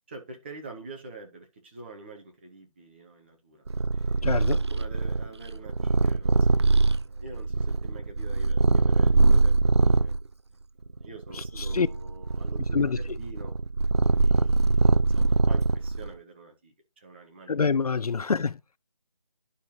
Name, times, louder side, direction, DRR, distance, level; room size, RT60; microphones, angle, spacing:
voice 1, 0.1-3.6 3.9-4.4 4.7-10.1 11.0-13.5 14.2-17.6, right 3 dB, 20° right, 1.2 m, -46 dB
Purr, 3.7-10.2 10.9-16.1, right 3 dB, 45° right, 0.5 m, -23 dB
voice 2, 4.2-4.6 11.3-11.9 12.7-13.0 17.5-18.6, left 5 dB, 70° left, 0.4 m, -26 dB
11.0 x 4.6 x 2.8 m
figure-of-eight pair, 160°, 20 cm